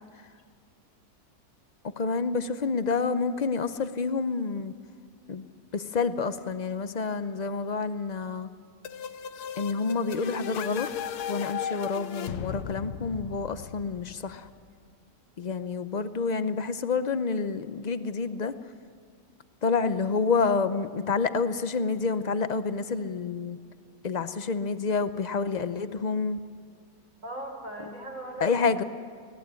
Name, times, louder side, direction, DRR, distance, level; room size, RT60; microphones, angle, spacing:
voice 1, 2.0-4.7 5.3-5.5 5.7-8.5 9.6-10.9 11.2-14.5 15.4-18.5 19.6-23.6 24.0-26.4 28.4-28.8, left 4 dB, 50° left, 12 dB, 0.5 m, -28 dB
sound 1, 8.8-14.5, left 8 dB, 85° left, 1.4 m, -36 dB
voice 2, 27.2-28.9, right 1 dB, 55° right, 1 dB, 5.1 m, -39 dB
24.0 x 18.0 x 8.4 m, 2.1 s
omnidirectional pair, 1.6 m